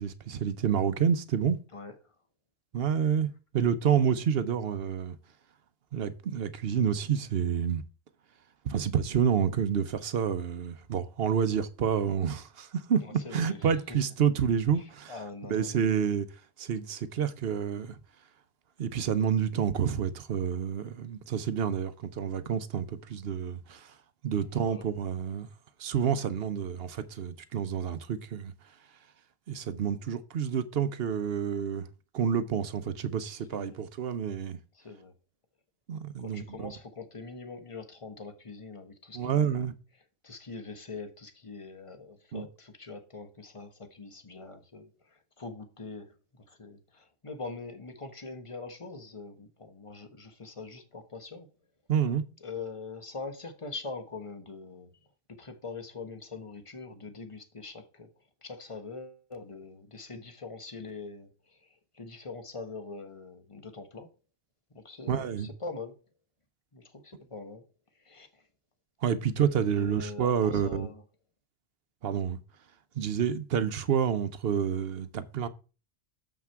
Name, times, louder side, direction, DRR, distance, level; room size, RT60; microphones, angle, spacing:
voice 1, 0.0-1.6 2.7-5.2 5.9-7.8 8.6-15.1 15.5-16.3 16.6-18.0 18.8-23.9 24.2-25.5 25.8-28.5 29.5-31.8 32.1-34.6 35.9-36.7 39.1-39.7 42.3-42.4 51.9-52.2 65.1-65.5 69.0-70.9 72.0-72.4 73.0-75.5, right 8 dB, 65° right, 0.9 m, -29 dB
voice 2, 1.7-2.1 13.0-14.0 14.7-15.8 24.4-24.9 33.5-33.8 34.7-35.1 36.2-39.7 40.2-51.5 52.4-54.9 55.3-58.1 58.4-64.1 64.7-66.0 66.7-67.7 67.9-68.4 69.7-71.0, left 4 dB, 30° left, 1.2 m, -43 dB
7.4 x 5.9 x 4.5 m
omnidirectional pair, 1.2 m